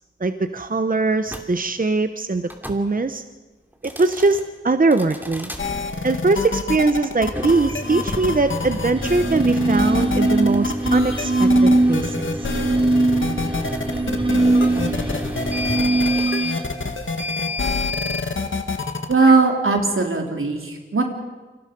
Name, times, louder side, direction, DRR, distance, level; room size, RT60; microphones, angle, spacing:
voice 1, 0.2-3.2 3.8-5.5 6.0-12.1 12.4-12.5, right 3 dB, 45° right, 9 dB, 1.0 m, -21 dB
sound 1, 1.3-1.5 2.4-2.8 3.7-4.4 4.9-5.6 7.2-18.3, left 1 dB, 10° right, 2.8 m, -31 dB
sound 2, 5.6-19.1, left 3 dB, 75° left, 2.0 m, -28 dB
sound 3, 9.0-16.6, right 2 dB, 25° right, 1.5 m, -21 dB
voice 2, 19.1-21.0, right 4 dB, 85° right, 2 dB, 3.5 m, -18 dB
29.0 x 26.0 x 5.3 m, 1.2 s
wide cardioid pair, 80°, 21 cm